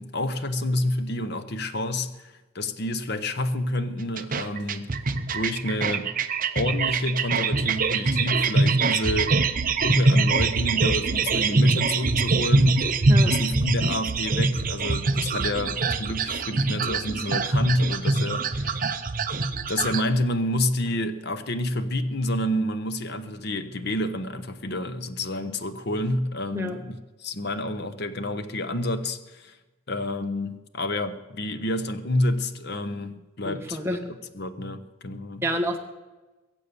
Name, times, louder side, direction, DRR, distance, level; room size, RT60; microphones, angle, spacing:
voice 1, 0.0-4.9 5.3-6.1 6.5-9.4 9.8-13.0 13.3-18.8 19.7-29.5 29.9-33.8 34.0-35.4, left 1 dB, 50° left, 0.9 m, -28 dB
sound 1, 4.2-20.0, right 3 dB, 40° right, 0.7 m, -23 dB
voice 2, 33.4-34.0 35.4-35.8, equal, 10° right, 1.4 m, -28 dB
22.5 x 7.5 x 6.9 m
head